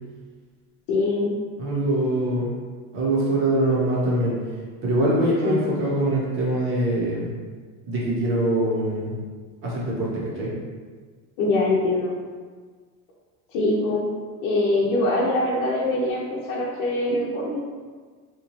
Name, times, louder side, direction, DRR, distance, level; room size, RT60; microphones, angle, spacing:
voice 1, 0.9-1.3 5.4-5.7 11.4-12.1 13.5-14.0 14.4-17.6, left 2 dB, 65° left, -4 dB, 0.6 m, -23 dB
voice 2, 1.6-2.5 2.9-4.3 4.8-7.3 7.9-9.1 9.6-10.5, right 1 dB, 35° right, -5 dB, 0.8 m, -23 dB
2.8 x 2.3 x 3.0 m, 1.5 s
cardioid pair, 160°, 35 cm